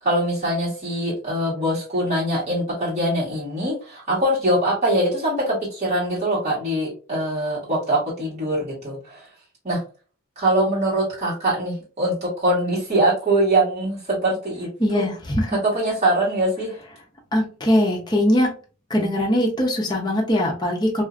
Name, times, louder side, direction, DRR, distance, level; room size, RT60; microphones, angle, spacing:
voice 1, 0.0-9.3 9.6-9.8 10.4-15.1 15.5-16.7, right 1 dB, 35° right, -8 dB, 1.4 m, -23 dB
voice 2, 14.8-15.6 17.3-18.5 18.9-21.0, left 1 dB, 20° left, -1 dB, 0.7 m, -21 dB
2.7 x 2.4 x 2.4 m, 0.36 s
head